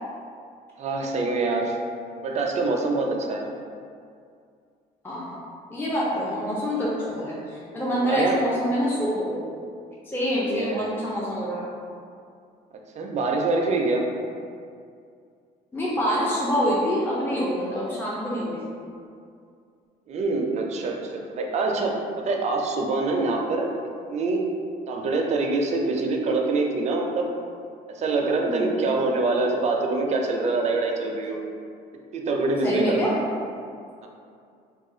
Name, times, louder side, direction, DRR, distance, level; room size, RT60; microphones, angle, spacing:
voice 1, 0.8-1.7 2.2-3.4 7.9-8.4 10.4-10.9 13.0-14.1 20.1-22.0 22.2-23.7 24.1-24.5 24.9-27.3 27.9-31.4 32.1-33.2 34.0-34.1, right 3 dB, 40° right, 1 dB, 0.4 m, -25 dB
voice 2, 5.0-5.4 5.7-9.5 10.1-11.7 15.7-18.6 28.4-28.7 32.6-33.2, equal, 10° left, -7 dB, 0.5 m, -26 dB
2.4 x 2.3 x 3.7 m, 2.3 s
cardioid pair, 110°, 17 cm